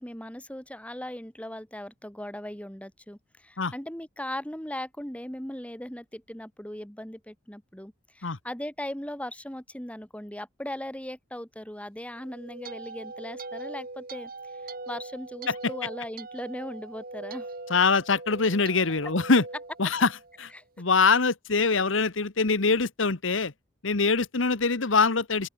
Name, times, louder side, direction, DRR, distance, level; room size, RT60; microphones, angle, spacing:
voice 1, 0.0-14.3 14.9-17.5 20.5-20.6, left 1 dB, 5° left, 2.6 m, -38 dB
sound 1, 12.1-20.5, right 3 dB, 50° right, 5.3 m, -41 dB
voice 2, 17.7-19.4 19.8-20.1 20.4-20.5 20.8-23.5 23.8-25.5, left 4 dB, 75° left, 1.3 m, -23 dB
open air
head